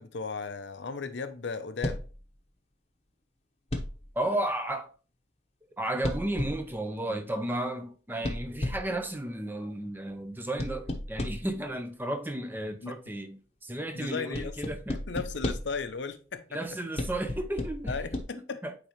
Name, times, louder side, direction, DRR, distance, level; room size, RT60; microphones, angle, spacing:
voice 1, 0.0-2.1 12.8-13.1 13.9-14.5 15.1-16.6 17.9-18.6, left 4 dB, 65° left, 0.6 m, -36 dB
sound 1, 1.8-2.2 3.7-4.1 6.0-6.7 8.2-9.0 10.6-11.6 14.3-15.8 17.0-18.2, left 1 dB, 35° left, 0.9 m, -34 dB
voice 2, 4.2-4.9 5.8-15.0 16.5-18.0 18.3-18.7, right 1 dB, 10° right, 0.6 m, -33 dB
8.9 x 3.8 x 3.0 m
head